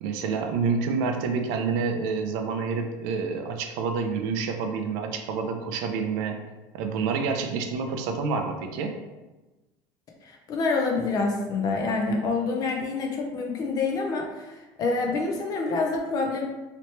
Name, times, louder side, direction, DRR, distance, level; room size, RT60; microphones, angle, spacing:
voice 1, 0.0-6.4 6.7-9.0, right 5 dB, 75° right, 5 dB, 0.5 m, -28 dB
voice 2, 10.2-16.4, left 3 dB, 35° left, 2 dB, 0.5 m, -27 dB
3.0 x 2.9 x 3.1 m, 1.1 s
cardioid pair, 165°, 11 cm